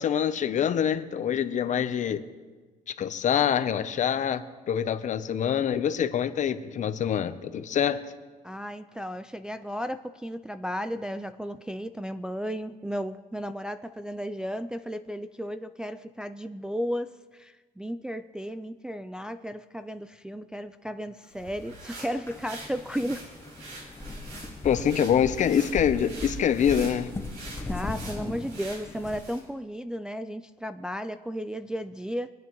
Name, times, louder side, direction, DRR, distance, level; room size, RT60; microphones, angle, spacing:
voice 1, 0.0-2.2 3.0-8.0 24.6-27.1, left 8 dB, 45° left, 11 dB, 0.7 m, -25 dB
voice 2, 8.4-23.2 27.7-32.3, equal, 5° right, 9 dB, 0.3 m, -34 dB
sound 1, 21.2-29.5, right 2 dB, 80° right, 4.3 m, -45 dB
sound 2, 22.3-29.2, left 2 dB, 15° left, 0.8 m, -38 dB
23.5 x 9.2 x 3.1 m, 1.4 s
cardioid pair, 110°, 17 cm